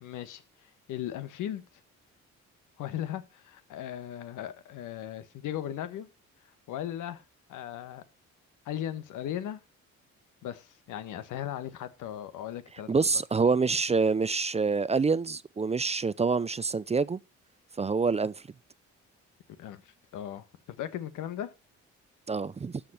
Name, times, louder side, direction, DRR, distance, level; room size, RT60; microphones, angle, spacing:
voice 1, 0.0-1.6 2.8-6.1 6.7-7.2 7.5-8.0 8.6-9.6 10.4-13.1 19.6-21.5, left 11 dB, 85° left, 1.5 m, -37 dB
voice 2, 12.9-17.2 17.8-18.3 22.3-22.8, right 4 dB, 20° right, 0.5 m, -26 dB
13.0 x 5.2 x 5.8 m
cardioid pair, 90°, 30 cm